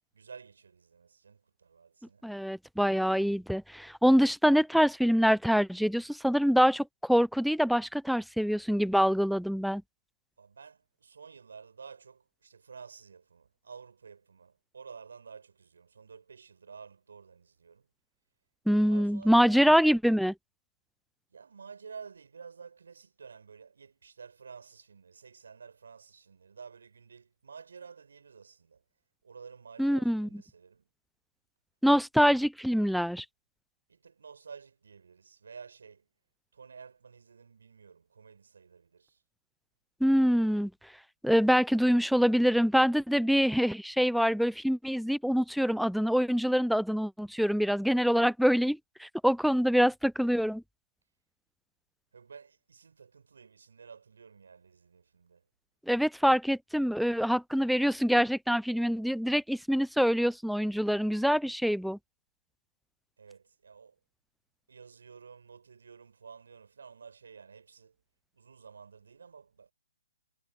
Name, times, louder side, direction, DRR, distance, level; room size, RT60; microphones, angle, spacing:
voice 1, 0.1-2.3 10.4-17.9 18.7-19.6 21.3-28.8 29.2-30.9 33.9-36.1 36.5-39.2 52.1-55.4 63.2-64.0 64.7-67.9 68.3-69.7, right 6 dB, 70° right, 7.6 m, -51 dB
voice 2, 2.2-9.8 18.7-20.3 29.8-30.3 31.8-33.2 40.0-40.7 41.2-50.6 55.9-62.0, equal, ahead, 0.5 m, -25 dB
figure-of-eight pair, 135°, 0 cm